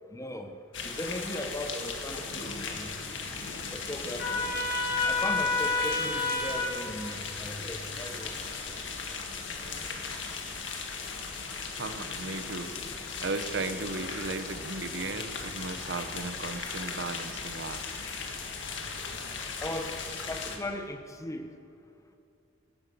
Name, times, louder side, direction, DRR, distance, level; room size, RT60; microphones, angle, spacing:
voice 1, 0.1-0.5 0.8-2.9 3.7-4.5 5.0-8.3 19.6-19.9 20.3-21.5, left 1 dB, 15° left, 6 dB, 1.0 m, -37 dB
sound 1, 0.7-20.6, left 4 dB, 75° left, 1.8 m, -37 dB
Trumpet, 4.2-6.7, left 3 dB, 55° left, 4.9 m, -28 dB
voice 2, 11.8-12.7 13.2-17.8, right 3 dB, 65° right, 9 dB, 1.0 m, -36 dB
19.0 x 10.0 x 6.8 m, 2.6 s
head